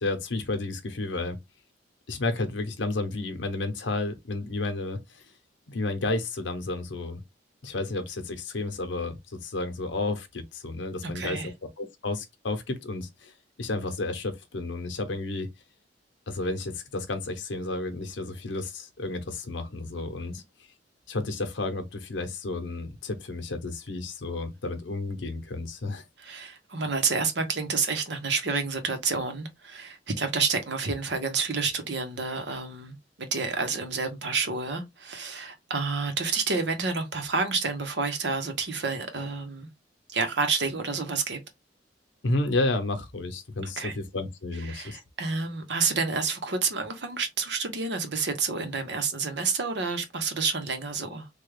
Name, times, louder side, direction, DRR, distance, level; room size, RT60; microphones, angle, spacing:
voice 1, 0.0-1.4 2.1-5.2 5.7-7.2 7.6-11.4 11.8-13.3 13.6-15.5 16.3-20.4 21.1-26.0 42.2-45.0, left 2 dB, 85° left, 0.8 m, -31 dB
voice 2, 11.0-11.5 20.2-20.3 26.2-39.7 40.1-41.4 43.6-43.9 44.6-51.3, right 4 dB, 65° right, 0.9 m, -29 dB
3.4 x 2.3 x 3.2 m
head